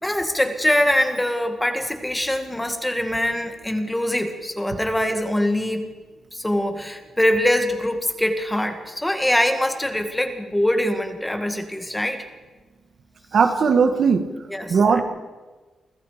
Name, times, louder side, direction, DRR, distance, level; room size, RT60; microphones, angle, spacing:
voice 1, 0.0-5.9 6.3-12.2 14.5-15.0, left 1 dB, 5° left, 6 dB, 2.1 m, -23 dB
voice 2, 13.3-14.2 14.7-15.0, right 5 dB, 50° right, 7 dB, 1.9 m, -17 dB
29.5 x 25.0 x 5.2 m, 1.3 s
wide cardioid pair, 155°, 0 cm